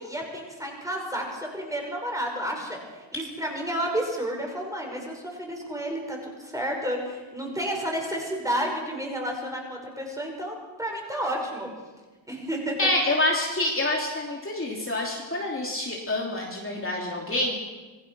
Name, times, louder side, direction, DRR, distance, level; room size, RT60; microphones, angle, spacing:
voice 1, 0.0-2.8 3.1-11.7 12.3-12.9, equal, 5° right, 0 dB, 5.6 m, -31 dB
voice 2, 12.8-17.5, left 1 dB, 25° left, -2 dB, 3.0 m, -27 dB
26.5 x 21.0 x 6.2 m, 1.2 s
wide cardioid pair, 175°, 47 cm